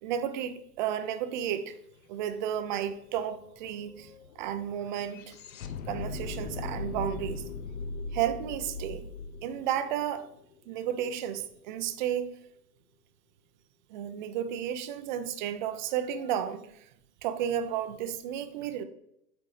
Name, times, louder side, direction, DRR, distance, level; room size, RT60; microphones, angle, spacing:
voice 1, 0.0-1.8 2.1-5.3 5.9-7.4 8.1-9.1 9.4-10.3 10.7-12.3 13.9-16.9 17.2-18.8, right 10 dB, 30° right, 0.5 m, -32 dB
sound 1, 2.2-2.3 2.5-10.8, left 3 dB, 60° left, 0.8 m, -39 dB
8.4 x 4.3 x 3.2 m
hypercardioid pair, 120°, 49 cm